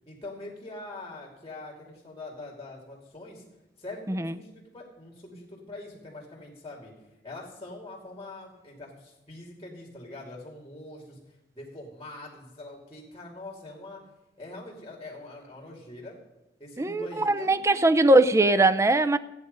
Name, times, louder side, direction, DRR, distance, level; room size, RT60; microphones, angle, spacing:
voice 1, 0.1-3.4 3.8-6.9 7.2-14.0 14.4-16.2 16.6-17.9, left 2 dB, 20° left, 2.6 m, -43 dB
voice 2, 16.8-19.2, right 2 dB, 15° right, 0.5 m, -21 dB
14.5 x 9.6 x 5.4 m
head